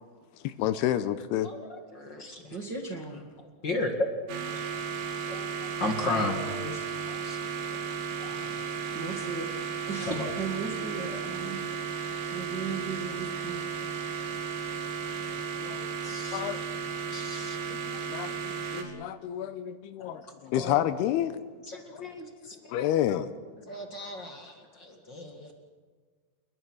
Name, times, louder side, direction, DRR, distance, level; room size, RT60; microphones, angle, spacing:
voice 1, 0.3-1.5 4.6-4.7 15.6-16.0 16.3-16.6 17.7-18.3 18.7-21.4 21.9-22.0 22.7-23.3, left 11 dB, 75° left, 12 dB, 2.7 m, -30 dB
voice 2, 1.4-2.6 3.4-4.1 5.1-6.4 7.1-7.4 7.7-7.8 8.2-8.7 10.0-10.3 16.0-16.6 17.1-17.6 20.0-20.2 20.5-20.8 21.7-22.7 23.7-25.5, left 2 dB, 40° left, 4 dB, 1.7 m, -35 dB
voice 3, 2.5-3.2 6.0-6.9 8.9-9.5 9.9-11.6 11.9-13.7, right 4 dB, 40° right, 0 dB, 1.7 m, -37 dB
sound 1, 4.3-18.8, right 6 dB, 85° right, 4.9 m, -34 dB
29.5 x 21.5 x 6.3 m, 1.5 s
omnidirectional pair, 4.9 m